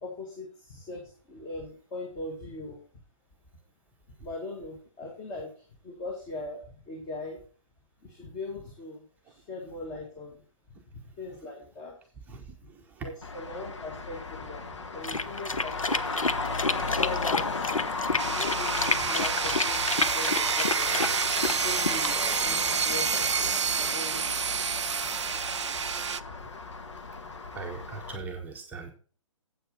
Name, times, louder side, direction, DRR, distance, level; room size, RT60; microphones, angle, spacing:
voice 1, 0.0-2.8 4.2-7.4 8.0-10.4 10.9-12.0 13.0-14.7 14.9-16.2 16.9-20.9 21.6-24.2, left 2 dB, 20° left, 0 dB, 1.9 m, -40 dB
voice 2, 10.7-11.4 12.3-13.1 27.4-28.9, right 4 dB, 10° right, 1 dB, 1.0 m, -41 dB
Traffic noise roadway noise, 13.2-28.2, left 3 dB, 60° left, 1.5 m, -35 dB
sound 1, 15.0-22.3, left 3 dB, 80° left, 0.8 m, -30 dB
sound 2, 18.2-26.2, right 6 dB, 60° right, 0.5 m, -28 dB
8.0 x 7.9 x 5.4 m, 0.40 s
figure-of-eight pair, 130°, 17 cm